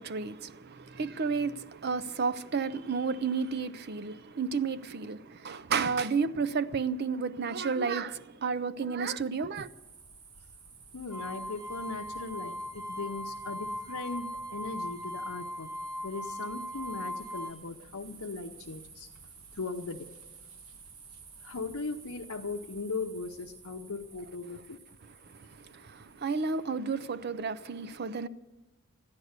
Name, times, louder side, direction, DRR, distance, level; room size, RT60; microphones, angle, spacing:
voice 1, 0.0-9.7 25.0-28.3, right 5 dB, 45° right, 0.5 m, -32 dB
sound 1, 9.5-26.6, right 5 dB, 75° right, 1.3 m, -53 dB
voice 2, 10.9-15.7 16.0-19.1 19.5-20.1 21.4-24.8, left 3 dB, 75° left, 0.8 m, -38 dB
sound 2, 11.1-17.5, equal, ahead, 1.5 m, -39 dB
14.0 x 10.5 x 8.0 m
head